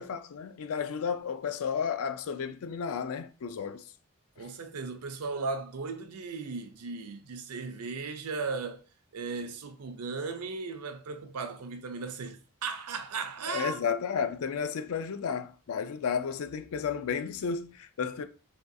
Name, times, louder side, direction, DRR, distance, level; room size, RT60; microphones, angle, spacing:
voice 1, 0.0-3.8 13.5-18.2, left 6 dB, 70° left, 0.4 m, -32 dB
voice 2, 4.4-8.8 9.1-13.8, right 4 dB, 80° right, 0.5 m, -36 dB
3.5 x 2.3 x 2.6 m
head